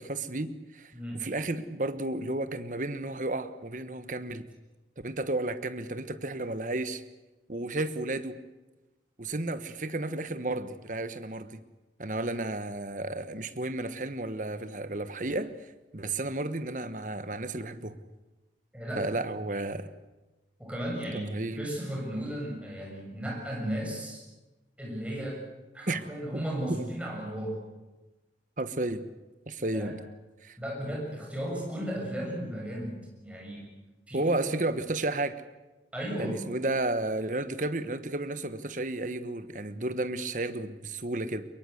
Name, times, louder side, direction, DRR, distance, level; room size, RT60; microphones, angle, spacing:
voice 1, 0.0-4.5 5.0-7.0 7.5-8.4 9.2-11.6 12.0-15.5 15.9-18.0 19.0-19.9 21.1-21.7 25.9-26.0 26.3-26.4 26.7-26.9 28.6-29.1 29.5-30.0 30.4-30.6 34.1-35.4 36.2-41.5, right 2 dB, 45° right, 11 dB, 1.3 m, -32 dB
voice 2, 0.9-1.3 18.7-19.2 20.6-21.3 21.6-24.2 24.8-25.4 25.7-27.6 29.7-29.9 30.6-33.7 34.1-34.4 35.9-36.5, right 1 dB, 5° right, -2 dB, 7.0 m, -35 dB
23.5 x 22.0 x 8.1 m, 1.1 s
head